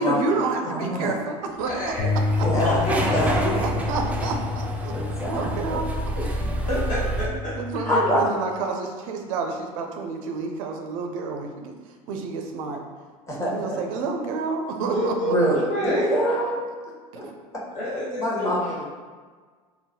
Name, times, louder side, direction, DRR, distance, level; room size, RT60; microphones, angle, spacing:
voice 1, 0.0-1.9 2.3-2.5 3.6-5.0 5.3-5.9 6.2-6.3 6.7-6.8 7.5-11.7 12.1-12.8 13.4-15.3 17.1-17.3, right 4 dB, 70° right, 3 dB, 0.4 m, -29 dB
voice 2, 0.7-1.2 2.4-2.8 3.1-3.6 4.9-5.8 6.4-6.6 7.9-8.3 13.3-14.0 14.8-14.9 15.2-16.6 17.1-17.2 18.2-18.8, equal, 15° left, -5 dB, 1.0 m, -25 dB
voice 3, 1.6-3.5 6.2-6.3 6.7-7.5 7.8-8.0 14.9-16.1 17.7-18.8, left 1 dB, 45° left, -6 dB, 1.2 m, -29 dB
sound 1, 1.6-7.3, right 1 dB, 5° right, 0.4 m, -28 dB
sound 2, 2.0-8.2, left 4 dB, 85° left, 0.6 m, -29 dB
3.7 x 2.1 x 2.8 m, 1.5 s
hypercardioid pair, 75°, 18 cm